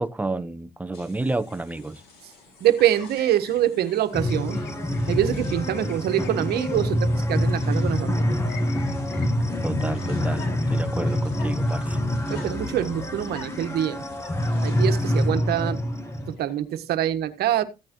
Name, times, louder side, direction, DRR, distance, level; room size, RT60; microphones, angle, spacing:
voice 1, 0.0-2.0 9.6-12.0, right 2 dB, 10° right, 0.8 m, -30 dB
sound 1, 0.9-15.3, left 4 dB, 65° left, 7.2 m, -54 dB
Chirp tweet, 1.5-16.6, left 4 dB, 80° left, 5.2 m, -49 dB
voice 2, 2.6-4.6 5.1-8.4 12.3-14.0 14.6-15.8 16.3-17.6, right 11 dB, 70° right, 1.3 m, -25 dB
sound 2, 4.1-16.3, left 1 dB, 15° left, 1.5 m, -26 dB
14.5 x 8.7 x 3.0 m
cardioid pair, 110°, 17 cm